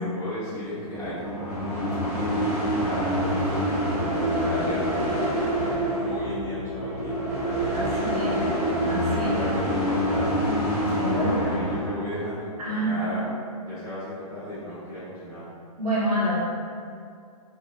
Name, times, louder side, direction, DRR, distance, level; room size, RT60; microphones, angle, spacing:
voice 1, 0.0-3.2 3.8-8.4 9.0-10.4 11.1-13.3 13.6-15.4, left 1 dB, 15° left, -12 dB, 1.1 m, -35 dB
sound 1, 0.9-12.0, equal, 10° right, 0.5 m, -26 dB
voice 2, 7.7-8.4 8.9-9.3 10.9-11.4 12.6-13.0 15.8-16.4, equal, 75° right, -8 dB, 1.1 m, -27 dB
2.9 x 2.4 x 2.2 m, 2.3 s
hypercardioid pair, 135°, 20 cm